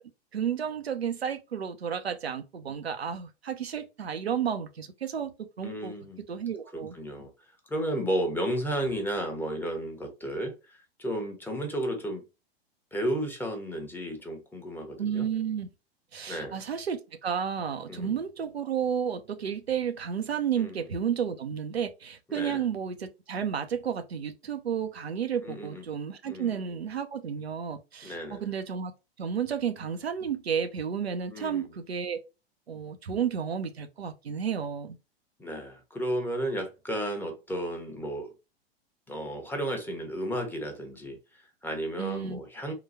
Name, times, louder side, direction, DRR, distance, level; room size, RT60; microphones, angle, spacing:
voice 1, 0.3-5.9 6.3-6.9 15.0-15.7 16.1-28.9 29.2-32.2 32.7-35.0 42.0-42.4, right 7 dB, 80° right, 0.6 m, -32 dB
voice 2, 5.6-6.2 6.7-12.2 12.9-15.3 16.3-16.6 17.9-18.2 20.6-20.9 22.3-22.6 25.4-25.8 26.2-26.8 28.0-28.5 31.3-31.8 35.4-38.3 39.1-42.7, right 1 dB, 5° left, 0.9 m, -33 dB
3.8 x 2.3 x 4.1 m
figure-of-eight pair, 95°, 31 cm